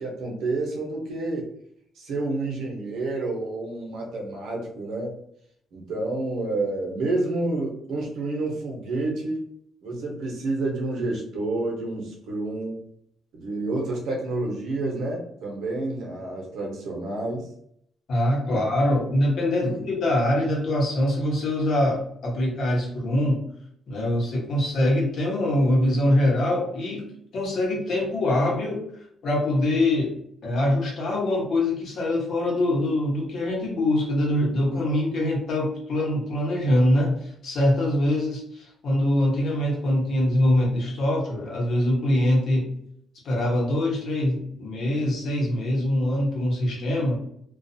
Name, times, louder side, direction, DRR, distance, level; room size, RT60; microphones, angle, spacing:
voice 1, 0.0-1.5 2.0-5.2 5.7-9.4 9.8-12.8 13.3-17.5 18.5-18.6 19.6-19.9, right 2 dB, 80° right, 0 dB, 0.8 m, -29 dB
voice 2, 18.1-23.4 23.9-28.9 29.2-30.1 30.4-42.7 43.2-47.2, left 1 dB, 65° left, -2 dB, 1.1 m, -23 dB
2.3 x 2.3 x 2.7 m, 0.68 s
cardioid pair, 90°, 0 cm